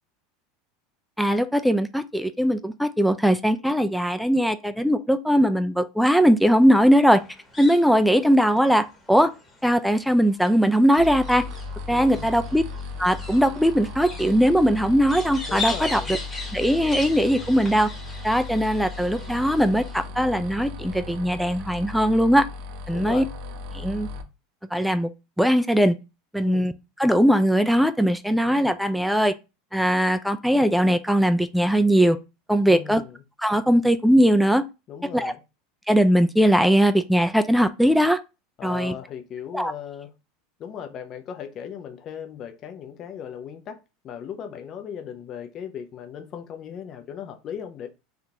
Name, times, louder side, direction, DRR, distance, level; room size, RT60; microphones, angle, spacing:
voice 1, 1.2-7.2 7.6-9.3 9.6-11.4 11.9-12.6 13.0-16.2 16.5-17.9 18.2-22.5 22.9-23.2 23.7-24.1 24.7-25.1 25.4-26.0 26.3-26.7 27.0-29.3 29.7-32.2 32.5-33.0 33.4-34.6 35.1-35.3 35.9-38.2 38.6-38.9 39.5-39.7, equal, ahead, 0.3 m, -20 dB
sound 1, 7.0-20.1, left 3 dB, 15° left, 1.4 m, -39 dB
sound 2, 10.9-24.2, left 2 dB, 65° right, 0.6 m, -36 dB
voice 2, 11.9-12.3 15.5-16.1 22.9-23.3 26.4-26.7 32.7-33.2 34.9-35.4 38.6-40.1 40.6-43.8 44.0-47.9, left 8 dB, 45° left, 0.6 m, -37 dB
3.5 x 2.4 x 2.8 m
hypercardioid pair, 90°, 0 cm